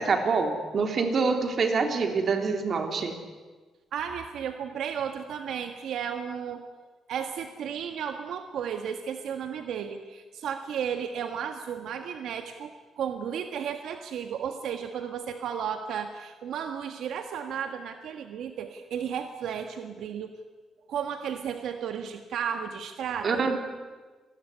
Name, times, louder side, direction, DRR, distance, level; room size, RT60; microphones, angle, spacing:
voice 1, 0.0-3.2 23.2-23.6, right 4 dB, 45° right, 5 dB, 3.5 m, -26 dB
voice 2, 3.9-6.6 7.1-20.4 20.9-23.4, right 8 dB, 75° right, 6 dB, 1.5 m, -34 dB
27.5 x 20.0 x 9.8 m, 1.4 s
cardioid pair, 140°, 0 cm